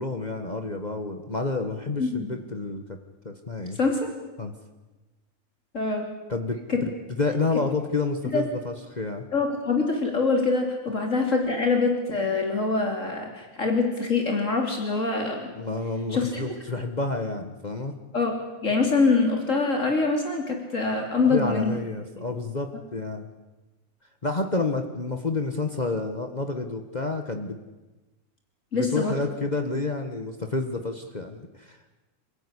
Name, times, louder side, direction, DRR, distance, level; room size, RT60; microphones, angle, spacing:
voice 1, 0.0-3.0 3.2-3.8 4.4-4.5 6.3-6.8 7.2-9.3 15.5-17.9 21.2-23.3 24.2-27.6 28.7-31.8, left 3 dB, 30° left, 6 dB, 1.6 m, -29 dB
voice 2, 2.0-2.3 3.7-4.1 5.7-6.1 6.7-6.9 8.3-8.5 9.3-15.5 16.1-16.5 18.1-18.3 18.6-21.8 28.7-29.1, left 4 dB, 65° left, 2 dB, 3.4 m, -24 dB
28.0 x 16.0 x 10.0 m, 1.1 s
omnidirectional pair, 1.4 m